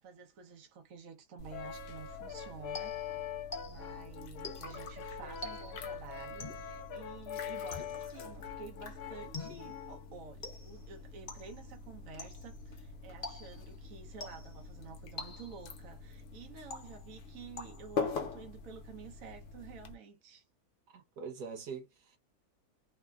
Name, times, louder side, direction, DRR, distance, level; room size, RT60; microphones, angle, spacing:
voice 1, 0.0-3.1 3.6-20.4, right 6 dB, 65° right, 1.2 m, -51 dB
sound 1, 1.4-20.0, left 4 dB, 65° left, 0.9 m, -45 dB
Brass instrument, 1.5-10.1, left 8 dB, 90° left, 0.5 m, -44 dB
sound 2, 2.7-4.0 4.4-4.9 5.4-5.9 6.4-6.8 7.7-8.2 9.3-9.8 10.4-10.9 11.3-11.7 12.2-12.6 13.2-13.7 14.2-14.6 15.2-15.7 16.7-17.2 17.6-18.1, left 3 dB, 35° left, 0.8 m, -46 dB
voice 2, 20.9-22.2, right 6 dB, 85° right, 1.5 m, -43 dB
3.2 x 2.1 x 2.3 m
omnidirectional pair, 1.6 m